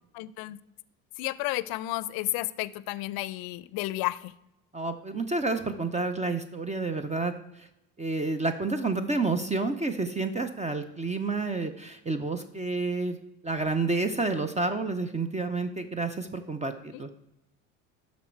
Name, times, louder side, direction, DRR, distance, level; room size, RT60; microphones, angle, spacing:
voice 1, 0.1-0.6 1.2-4.3 16.9-17.0, left 18 dB, 75° left, 19 dB, 0.5 m, -32 dB
voice 2, 4.7-7.7 8.0-13.2 13.4-17.1, right 3 dB, 20° right, 9 dB, 0.6 m, -29 dB
12.0 x 4.2 x 4.5 m, 0.89 s
supercardioid pair, 85°, 37 cm